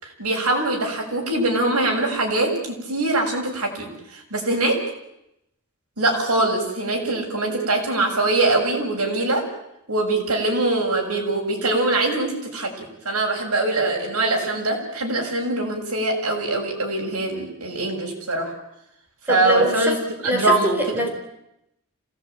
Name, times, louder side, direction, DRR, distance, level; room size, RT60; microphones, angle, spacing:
voice 1, 0.0-4.8 6.0-9.4 9.9-18.5 19.3-20.0 20.3-21.1, right 2 dB, 80° right, 1 dB, 6.9 m, -23 dB
voice 2, 19.3-20.0 20.2-21.1, equal, 10° right, 2 dB, 4.3 m, -23 dB
27.0 x 18.0 x 9.3 m, 0.84 s
head